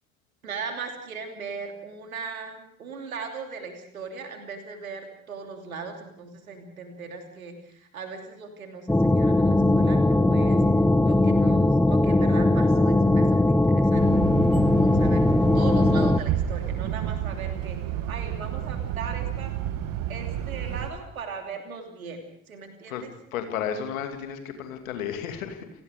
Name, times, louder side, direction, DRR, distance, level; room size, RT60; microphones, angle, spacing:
voice 1, 0.4-10.6 11.0-14.1 14.7-17.8 18.1-19.5 20.1-23.1, right 5 dB, 80° right, 4 dB, 3.0 m, -38 dB
sound 1, 8.9-16.2, left 2 dB, 5° left, 0.8 m, -20 dB
sound 2, 13.9-20.9, right 11 dB, 50° right, 1.7 m, -31 dB
voice 2, 23.3-25.8, left 8 dB, 75° left, 6 dB, 2.6 m, -33 dB
29.0 x 18.5 x 5.2 m, 0.71 s
figure-of-eight pair, 50°, 41 cm